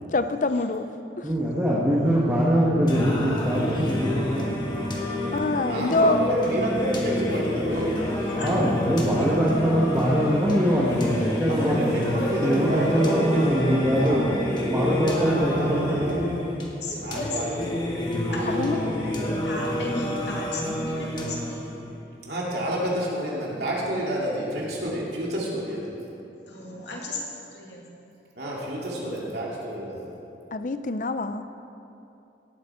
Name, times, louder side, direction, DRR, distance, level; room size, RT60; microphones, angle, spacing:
voice 1, 0.1-0.9 1.2-1.3 5.3-6.3 18.5-18.9 30.5-31.4, left 3 dB, 45° left, 10 dB, 0.5 m, -25 dB
voice 2, 1.2-4.9 8.3-12.1 12.4-16.3, equal, 15° right, -7 dB, 1.2 m, -23 dB
Singing, 2.9-21.9, left 1 dB, 25° left, 1.3 m, -29 dB
voice 3, 5.6-7.9 11.5-16.2 16.9-17.7 18.3-18.8 22.2-25.9 28.4-30.0, right 1 dB, 65° right, -4 dB, 2.5 m, -29 dB
sound 1, 7.7-14.1, equal, 65° left, 3.0 m, -40 dB
voice 4, 8.4-9.7 16.8-17.7 18.3-21.7 26.5-28.1, left 2 dB, 80° left, -2 dB, 2.3 m, -36 dB
17.5 x 8.4 x 4.4 m, 2.8 s
head